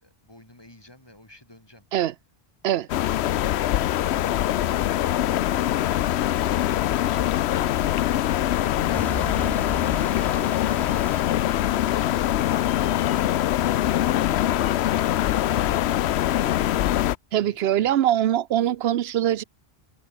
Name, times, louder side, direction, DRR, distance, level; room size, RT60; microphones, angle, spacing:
voice 1, 0.0-1.9 2.7-2.9, left 1 dB, 25° left, 2.9 m, -51 dB
sound 1, 2.9-17.2, left 12 dB, 85° left, 0.9 m, -23 dB
sound 2, 8.4-12.0, equal, ahead, 0.9 m, -37 dB
voice 2, 17.3-19.4, right 11 dB, 75° right, 0.9 m, -22 dB
omnidirectional pair, 1.1 m